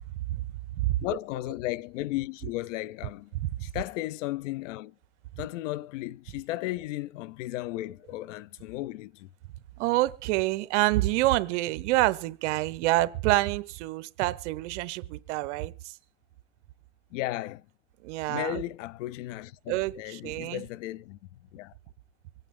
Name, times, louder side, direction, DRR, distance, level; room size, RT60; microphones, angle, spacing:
voice 1, 1.0-3.3 3.6-4.9 5.4-9.3 17.1-17.7 18.3-21.2 21.5-21.7, left 16 dB, 85° left, 0.6 m, -35 dB
voice 2, 9.8-15.9 18.0-18.6 19.7-20.7, right 18 dB, 70° right, 0.8 m, -27 dB
24.5 x 9.1 x 3.7 m
supercardioid pair, 135°, 36 cm